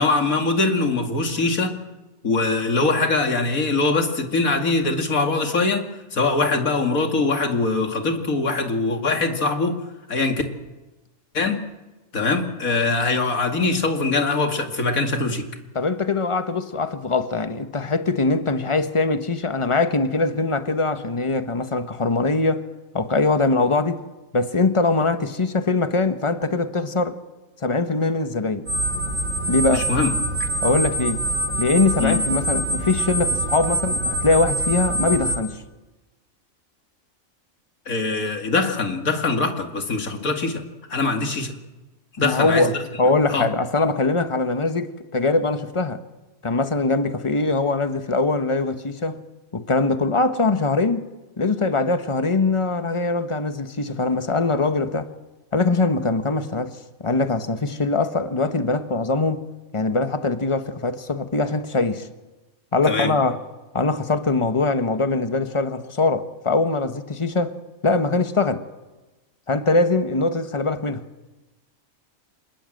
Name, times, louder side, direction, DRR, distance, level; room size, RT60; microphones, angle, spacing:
voice 1, 0.0-1.8 2.2-9.8 10.1-10.4 11.3-11.6 12.1-15.5 29.7-30.1 30.4-30.5 32.0-32.2 37.9-40.6 40.9-41.5 42.2-42.6 43.3-43.5 62.8-63.1, left 3 dB, 80° left, 2.7 m, -22 dB
voice 2, 15.7-22.6 22.9-24.0 24.3-27.2 27.6-28.7 29.5-29.9 30.6-31.2 31.6-35.6 42.2-46.0 46.4-49.2 49.5-51.1 51.4-55.1 55.5-59.4 59.7-62.1 62.7-63.4 63.7-67.6 67.8-68.6 69.5-71.0, left 3 dB, 25° left, 1.2 m, -22 dB
sound 1, 28.7-35.4, right 1 dB, 65° right, 3.4 m, -25 dB
27.0 x 19.5 x 7.8 m
omnidirectional pair, 1.5 m